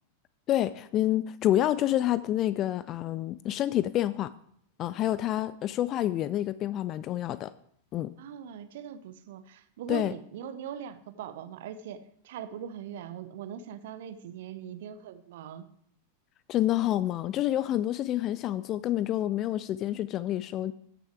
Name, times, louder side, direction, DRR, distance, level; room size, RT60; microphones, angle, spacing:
voice 1, 0.5-4.3 4.8-7.5 7.9-8.1 9.9-10.1 16.5-20.7, left 13 dB, 35° left, 17 dB, 0.3 m, -28 dB
voice 2, 8.2-15.7, right 9 dB, 55° right, 12 dB, 0.9 m, -41 dB
14.0 x 6.5 x 4.6 m, 0.68 s
figure-of-eight pair, 90°, 0 cm